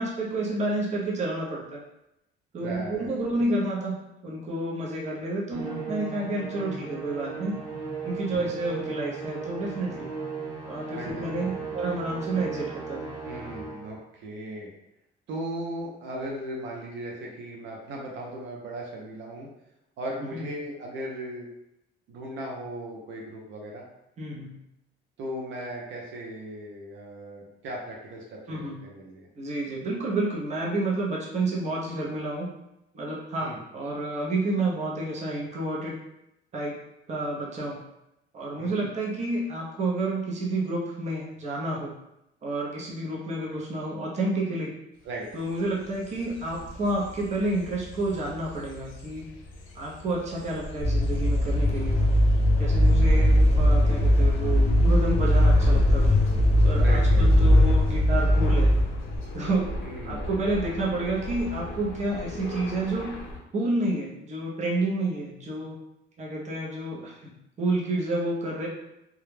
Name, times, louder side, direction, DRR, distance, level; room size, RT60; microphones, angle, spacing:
voice 1, 0.0-1.8 2.5-7.6 8.0-10.1 10.6-13.1 20.3-20.4 24.2-24.5 28.5-28.8 29.4-32.5 32.9-35.9 36.5-36.8 37.1-37.8 38.3-41.9 42.4-44.7 45.3-49.2 49.7-52.0 52.6-56.2 56.6-58.7 59.3-59.7 60.0-63.1 63.5-65.8 66.2-68.7, right 2 dB, 35° right, -3 dB, 0.6 m, -30 dB
voice 2, 2.6-3.2 8.3-8.5 10.9-12.0 13.2-14.7 15.3-19.5 20.0-21.5 22.1-23.8 25.2-29.3 33.4-33.6 38.6-38.9 45.0-45.3 56.7-57.3 59.8-60.3, right 1 dB, 75° right, -1 dB, 0.6 m, -37 dB
Musical instrument, 5.5-14.0, right 4 dB, 15° right, 0.9 m, -36 dB
sound 1, 45.0-63.4, left 1 dB, 80° left, 0.6 m, -38 dB
sound 2, 50.8-59.2, left 1 dB, 30° left, 0.4 m, -20 dB
2.3 x 2.1 x 3.1 m, 0.85 s
cardioid pair, 130°, 20 cm